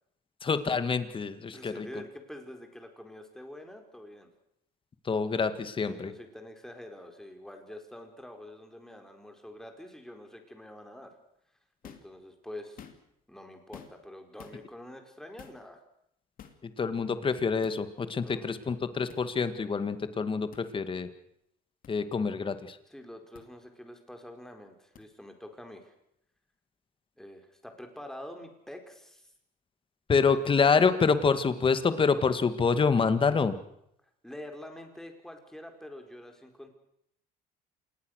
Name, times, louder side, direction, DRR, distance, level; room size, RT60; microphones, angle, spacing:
voice 1, 0.4-1.9 5.1-6.1 16.8-21.1 21.9-22.8 30.1-33.6, left 5 dB, 30° left, 11 dB, 2.0 m, -26 dB
voice 2, 1.5-4.3 5.9-11.1 11.8-12.8 13.3-15.8 18.2-18.6 22.9-25.9 27.2-29.3 34.2-36.7, left 1 dB, 5° left, 4 dB, 4.5 m, -46 dB
sound 1, 11.8-12.1 12.6-13.2 13.7-14.1 14.4-14.6 15.4-15.6 16.4-16.6 17.6-17.8 19.1-19.2 20.5-20.7 21.8-21.9 23.3-23.5 25.0-25.1, left 8 dB, 55° left, 2.9 m, -50 dB
27.0 x 20.0 x 6.6 m, 0.77 s
cardioid pair, 110°, 17 cm